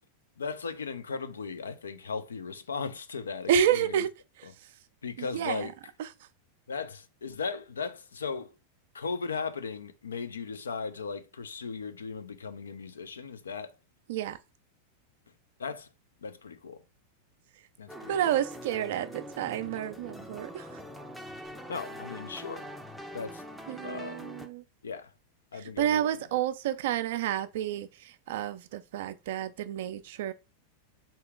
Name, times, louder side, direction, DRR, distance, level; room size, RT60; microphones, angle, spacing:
voice 1, 0.4-4.0 4.4-4.5 5.0-5.7 6.7-8.5 8.9-13.7 15.6-15.9 16.2-16.8 17.8-18.3 21.7-22.7 23.1-23.4 23.8-24.2 24.8-25.1 25.5-26.2, left 5 dB, 70° left, 0.5 m, -37 dB
voice 2, 3.5-4.1 4.4-4.5 5.2-5.7 6.0-6.1 14.1-14.4 18.1-20.8 23.7-24.6 25.6-30.3, right 10 dB, 55° right, 0.4 m, -30 dB
sound 1, 17.9-24.5, equal, ahead, 0.6 m, -44 dB
3.6 x 2.9 x 3.5 m
figure-of-eight pair, 90°, 0 cm